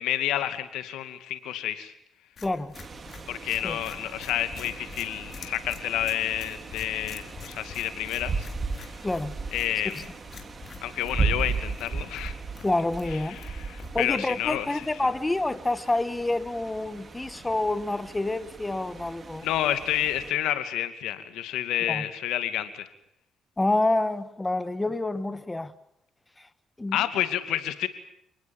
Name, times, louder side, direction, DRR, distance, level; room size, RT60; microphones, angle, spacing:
voice 1, 0.0-1.9 3.3-8.5 9.5-10.1 10.8-12.4 13.1-15.1 19.4-22.9 26.9-27.9, left 12 dB, 90° left, 2.5 m, -29 dB
sound 1, 2.4-14.3, left 6 dB, 50° left, 4.3 m, -47 dB
voice 2, 2.4-2.7 3.6-3.8 9.0-9.4 12.6-13.4 13.9-19.5 21.9-22.0 23.6-25.7 26.4-26.5 26.8-27.0, left 2 dB, 15° left, 1.5 m, -28 dB
sound 2, 2.7-20.3, right 4 dB, 35° right, 3.4 m, -36 dB
29.0 x 20.0 x 7.3 m
cardioid pair, 90°, 0 cm